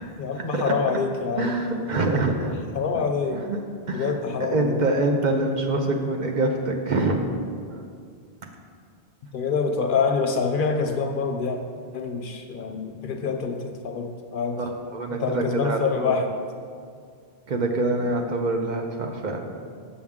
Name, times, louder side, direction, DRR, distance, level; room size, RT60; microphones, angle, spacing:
voice 1, 0.2-1.6 2.7-3.5 3.9-4.8 9.3-11.6 11.9-14.6 15.2-16.4, left 5 dB, 60° left, 5 dB, 0.7 m, -26 dB
voice 2, 1.4-2.5 3.3-3.6 3.9-7.2 7.7-7.8 14.6-16.1 17.5-19.5, right 2 dB, 55° right, 2 dB, 0.7 m, -25 dB
7.2 x 6.9 x 3.6 m, 2.2 s
omnidirectional pair, 1.0 m